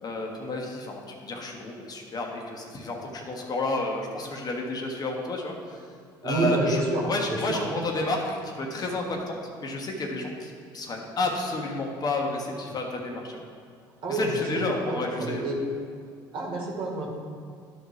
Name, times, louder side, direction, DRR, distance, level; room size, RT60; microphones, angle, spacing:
voice 1, 0.0-5.9 6.2-6.8 7.0-13.4 14.1-15.5, left 2 dB, 40° left, 0 dB, 1.4 m, -31 dB
voice 2, 6.2-7.6 14.0-14.6 14.9-15.6 16.3-17.1, right 2 dB, 60° right, -2 dB, 2.3 m, -28 dB
11.5 x 4.2 x 4.9 m, 2.2 s
supercardioid pair, 85°, 10 cm